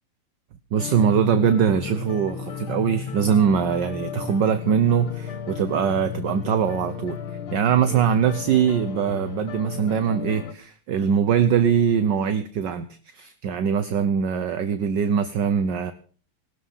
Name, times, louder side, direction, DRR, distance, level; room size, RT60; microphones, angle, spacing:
voice 1, 0.7-7.2 7.5-12.9 13.1-15.9, right 7 dB, 60° right, 11 dB, 1.5 m, -22 dB
sound 1, 0.8-10.5, left 7 dB, 70° left, 2.2 m, -34 dB
19.5 x 13.0 x 5.6 m, 0.43 s
omnidirectional pair, 2.4 m